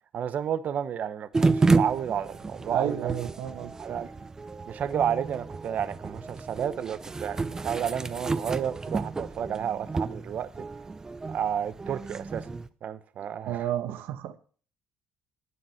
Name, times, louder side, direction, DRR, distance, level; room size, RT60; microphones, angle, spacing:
voice 1, 0.1-1.3 1.5-3.1 3.8-4.1 4.7-10.5 11.3-12.5 12.8-13.7, right 9 dB, 50° right, 0.9 m, -31 dB
sound 1, 1.3-12.7, right 3 dB, 15° right, 0.7 m, -30 dB
voice 2, 2.7-3.7 13.5-14.4, right 11 dB, 80° right, 1.2 m, -31 dB
11.0 x 9.3 x 5.7 m
cardioid pair, 125°, 3 cm